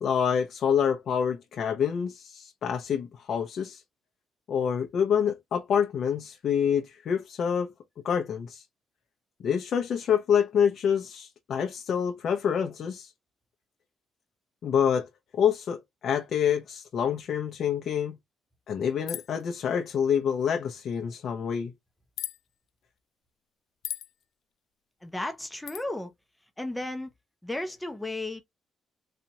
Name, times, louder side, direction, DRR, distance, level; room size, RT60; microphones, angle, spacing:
voice 1, 0.0-3.8 4.5-7.7 8.0-8.6 9.4-13.1 14.6-18.2 18.7-21.7, left 8 dB, 55° left, 0.7 m, -27 dB
sound 1, 19.1-19.4 22.2-22.4 23.8-24.1 25.7-25.8, left 13 dB, 75° left, 0.3 m, -35 dB
voice 2, 25.0-26.1 26.6-27.1 27.4-28.4, left 2 dB, 5° left, 0.6 m, -34 dB
4.3 x 2.4 x 2.8 m
cardioid pair, 155°, 0 cm